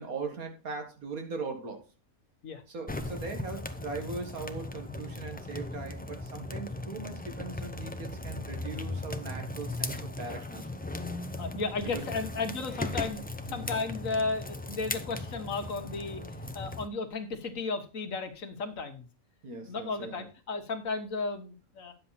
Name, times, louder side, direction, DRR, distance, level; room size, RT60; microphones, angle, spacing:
voice 1, 0.0-1.8 2.7-10.7 11.8-12.1 13.5-13.7 19.4-20.2, right 4 dB, 85° right, 4 dB, 2.2 m, -39 dB
sound 1, 2.9-16.9, left 2 dB, 10° left, 0.4 m, -38 dB
voice 2, 11.4-13.2 13.5-16.2 16.5-19.1 19.6-21.9, left 4 dB, 70° left, 7 dB, 1.7 m, -34 dB
10.0 x 7.6 x 4.1 m, 0.32 s
omnidirectional pair, 1.5 m